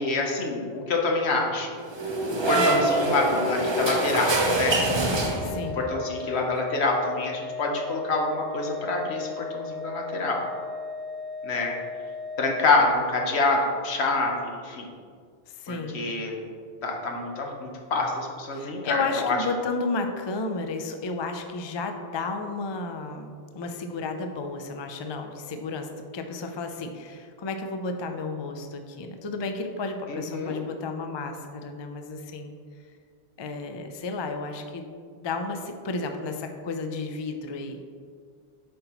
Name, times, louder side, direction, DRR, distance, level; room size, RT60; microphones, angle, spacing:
voice 1, 0.0-1.8 2.4-4.8 5.8-10.4 11.4-11.7 12.4-14.9 15.7-16.4 16.8-19.4 30.1-30.6, left 3 dB, 75° left, 1 dB, 1.2 m, -26 dB
sound 1, 1.9-5.8, right 2 dB, 30° right, 0.6 m, -25 dB
voice 2, 2.5-2.9 5.4-5.9 15.5-16.1 18.5-32.5 33.4-34.8 35.2-37.8, left 3 dB, 45° left, 6 dB, 0.3 m, -32 dB
Organ, 2.7-13.4, left 3 dB, 80° right, 0.9 m, -36 dB
7.9 x 5.2 x 3.0 m, 2.1 s
omnidirectional pair, 1.1 m